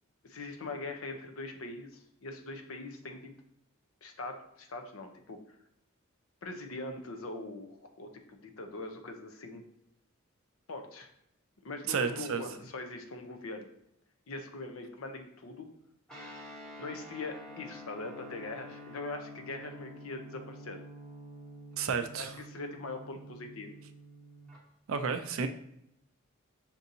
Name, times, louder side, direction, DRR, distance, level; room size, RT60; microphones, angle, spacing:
voice 1, 0.2-3.3 4.0-5.6 6.4-9.6 10.7-11.1 11.6-13.7 14.3-15.7 16.8-20.8 22.1-23.8, left 3 dB, 80° left, 5 dB, 0.6 m, -42 dB
voice 2, 11.9-12.4 21.8-22.3 24.9-25.5, right 6 dB, 75° right, 8 dB, 0.4 m, -31 dB
Guitar, 16.1-24.6, equal, 5° left, 0.9 m, -49 dB
6.0 x 2.6 x 2.6 m, 0.77 s
head